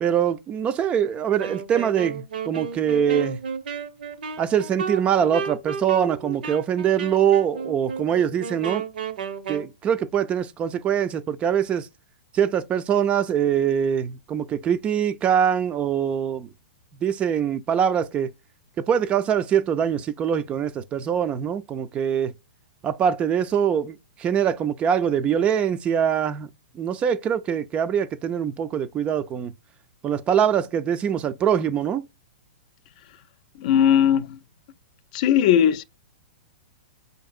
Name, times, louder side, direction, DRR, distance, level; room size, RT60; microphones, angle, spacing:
voice 1, 0.0-3.4 4.4-8.8 9.5-11.9 12.3-16.5 17.0-18.3 18.8-22.3 22.8-26.5 26.8-29.5 30.0-32.1, right 8 dB, 25° right, 0.3 m, -23 dB
Wind instrument woodwind instrument, 1.4-9.7, right 7 dB, 75° right, 0.7 m, -33 dB
voice 2, 33.6-34.4 35.1-35.8, left 9 dB, 50° left, 0.4 m, -18 dB
5.1 x 2.7 x 2.4 m
hypercardioid pair, 130°, 5 cm